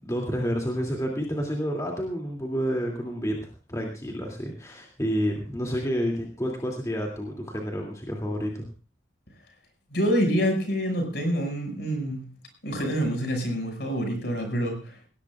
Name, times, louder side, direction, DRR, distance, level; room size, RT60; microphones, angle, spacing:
voice 1, 0.0-8.7, equal, 15° left, 0 dB, 2.6 m, -29 dB
voice 2, 9.9-12.3 12.6-15.0, equal, 55° left, 4 dB, 5.9 m, -26 dB
21.0 x 17.5 x 2.4 m, 0.35 s
head